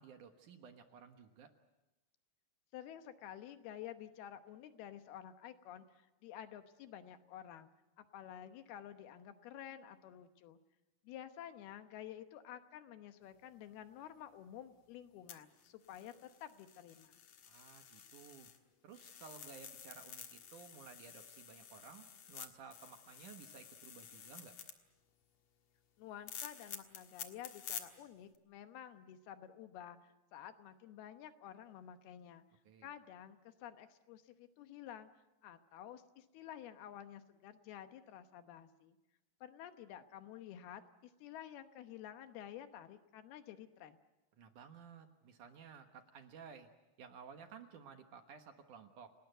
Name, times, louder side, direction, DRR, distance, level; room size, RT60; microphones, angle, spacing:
voice 1, 0.0-1.5 17.5-18.5 18.8-24.5 32.7-32.9 44.4-46.7 47.0-49.1, right 6 dB, 60° right, 6 dB, 2.5 m, -55 dB
voice 2, 2.7-7.7 8.0-10.6 11.0-17.2 26.0-32.4 32.8-35.1 35.4-39.0 39.4-44.0, left 10 dB, 80° left, 9 dB, 3.0 m, -51 dB
sound 1, 15.3-18.6 18.9-24.7 26.3-27.8 28.3-28.4, left 8 dB, 55° left, 2.4 m, -51 dB
30.0 x 19.0 x 8.0 m, 1.0 s
omnidirectional pair, 4.6 m